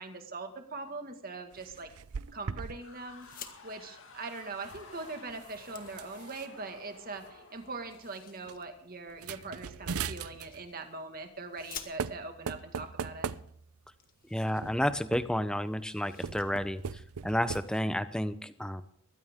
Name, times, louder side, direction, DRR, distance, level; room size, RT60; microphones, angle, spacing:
voice 1, 0.0-1.9 2.3-3.3 3.6-13.3, right 3 dB, 40° right, 6 dB, 1.9 m, -42 dB
sound 1, 1.5-2.8 3.1-3.4 4.5-6.5 7.2-7.3 7.6-7.9 8.4-8.6 9.1-10.7 11.6-11.7 12.0-13.9 14.6-15.5 16.1-17.6, right 6 dB, 90° right, 0.6 m, -40 dB
sound 2, 2.8-8.6, left 4 dB, 65° left, 2.1 m, -53 dB
sound 3, 3.1-3.6 4.9-5.0 5.3-6.7 7.8-8.7 10.0-10.9 11.5-12.4 13.3-13.4 13.6-13.7 14.0-15.3 15.6-16.5 16.8-17.0 17.4-17.8, left 9 dB, 40° left, 1.6 m, -50 dB
voice 2, 14.3-18.8, equal, 5° left, 11 dB, 0.7 m, -31 dB
22.0 x 15.5 x 3.7 m, 0.62 s
head